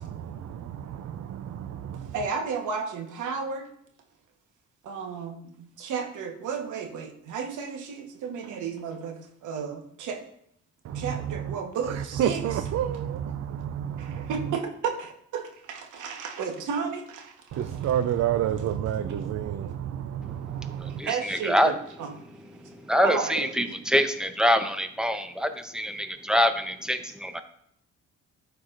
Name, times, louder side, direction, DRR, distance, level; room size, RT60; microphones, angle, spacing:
voice 1, 0.0-2.1 10.8-11.6 11.9-14.5 17.5-21.0, right 10 dB, 55° right, 0.5 m, -30 dB
voice 2, 2.1-3.7 4.8-10.2 10.9-12.4 14.0-17.6 19.1-19.2 20.7-22.4 23.0-23.8, right 6 dB, 80° right, 1.2 m, -33 dB
voice 3, 20.8-21.7 22.6-27.4, equal, ahead, 0.7 m, -25 dB
12.0 x 4.7 x 2.5 m
cardioid pair, 90°, 30 cm